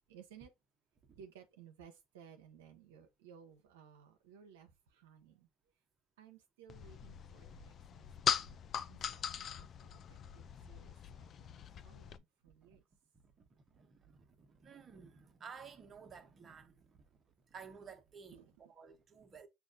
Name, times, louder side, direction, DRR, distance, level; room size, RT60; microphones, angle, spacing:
voice 1, 0.1-0.5 1.2-5.5 6.2-8.6 8.9-12.8 18.3-18.5, right 8 dB, 85° right, 0.6 m, -59 dB
sound 1, 6.7-12.2, left 8 dB, 45° left, 0.3 m, -40 dB
voice 2, 14.5-17.0 17.5-18.4 18.7-19.5, right 6 dB, 35° right, 0.9 m, -53 dB
6.1 x 2.4 x 2.5 m
hypercardioid pair, 80°, 0 cm